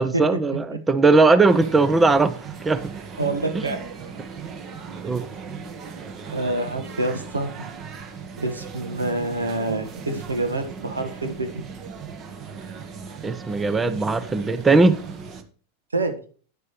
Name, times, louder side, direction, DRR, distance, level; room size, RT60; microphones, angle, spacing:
voice 1, 0.0-2.4 2.6-2.9 3.5-3.7 5.0-5.3 13.2-15.0, right 3 dB, 15° right, 0.6 m, -19 dB
sound 1, 1.5-15.4, right 6 dB, 30° right, 1.3 m, -37 dB
voice 2, 3.2-3.8 6.3-7.7 8.4-11.6 15.9-16.2, right 2 dB, 75° right, 1.5 m, -27 dB
11.0 x 9.8 x 3.2 m
figure-of-eight pair, 90°, 0 cm